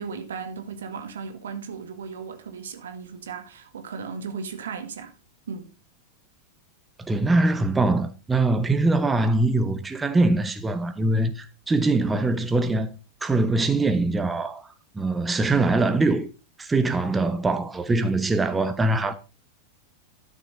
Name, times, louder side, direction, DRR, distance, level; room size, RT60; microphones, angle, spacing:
voice 1, 0.0-5.1 5.5-5.7, right 5 dB, 65° right, 1.9 m, -36 dB
voice 2, 7.0-16.3 16.6-19.1, right 2 dB, 10° right, 1.2 m, -23 dB
12.5 x 6.7 x 4.2 m
figure-of-eight pair, 90°, 0 cm